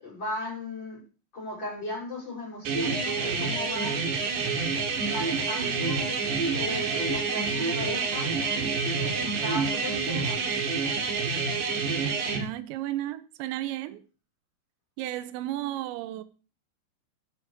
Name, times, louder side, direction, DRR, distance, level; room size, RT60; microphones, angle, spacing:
voice 1, 0.0-1.0 1.3-4.0 5.0-6.2 6.5-8.3 8.9-10.6, left 2 dB, 25° left, 6.6 m, -36 dB
sound 1, 2.7-12.4, right 4 dB, 60° right, 3.1 m, -28 dB
voice 2, 12.3-14.0 15.0-16.2, right 14 dB, 85° right, 3.1 m, -33 dB
12.0 x 9.6 x 5.0 m
omnidirectional pair, 5.2 m